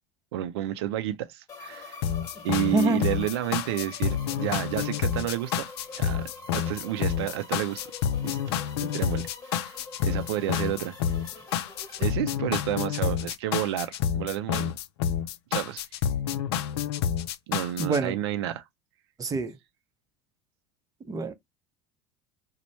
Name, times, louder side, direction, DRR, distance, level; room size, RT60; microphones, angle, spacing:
voice 1, 0.3-2.0 2.4-5.6 5.9-6.2 6.5-7.8 8.2-8.4 8.8-9.7 10.0-11.0 12.0-14.7 15.5-15.8 17.5-18.6, right 12 dB, 80° right, 0.4 m, -30 dB
sound 1, 1.5-12.1, left 4 dB, 30° left, 1.3 m, -45 dB
sound 2, 2.0-18.0, left 8 dB, 80° left, 0.4 m, -29 dB
voice 2, 2.7-3.0 13.0-13.1 17.8-18.2 19.2-19.6 21.0-21.3, right 2 dB, 25° right, 0.7 m, -26 dB
3.0 x 2.1 x 4.1 m
hypercardioid pair, 85°, 13 cm